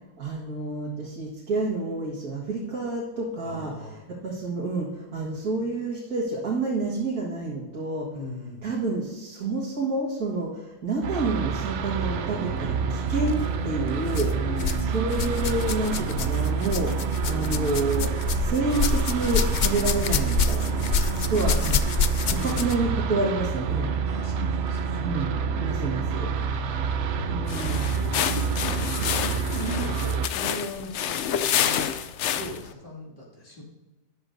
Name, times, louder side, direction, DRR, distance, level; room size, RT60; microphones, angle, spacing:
voice 1, 0.2-3.7 4.2-8.1 8.6-14.3 14.9-20.8 21.3-21.8 22.3-23.9 25.0-26.3 27.3-27.9, right 3 dB, 85° right, -5 dB, 2.3 m, -29 dB
voice 2, 3.4-4.0 8.1-8.7 14.3-15.3 20.6-21.4 22.3-23.1 24.0-25.1 26.3-33.6, left 1 dB, 35° left, -5 dB, 2.8 m, -39 dB
sound 1, 11.0-30.3, right 6 dB, 60° right, 0.9 m, -28 dB
sound 2, 13.2-13.3 14.1-14.8 15.1-22.9 23.8-23.9 24.7-24.8, left 5 dB, 80° left, 0.4 m, -27 dB
sound 3, 27.4-32.7, left 9 dB, 65° left, 0.8 m, -28 dB
13.0 x 11.0 x 2.7 m, 1.1 s
omnidirectional pair, 1.5 m